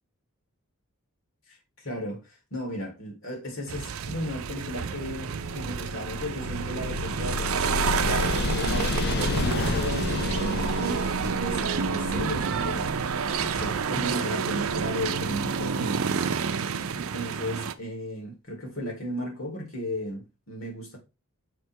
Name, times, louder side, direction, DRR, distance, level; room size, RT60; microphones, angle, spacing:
voice 1, 1.5-16.4 16.9-21.0, equal, 65° left, 2.9 m, -35 dB
sound 1, 3.7-17.7, right 6 dB, 70° right, 0.5 m, -29 dB
sound 2, 5.4-15.4, left 4 dB, 45° left, 0.4 m, -32 dB
7.3 x 3.3 x 4.6 m
head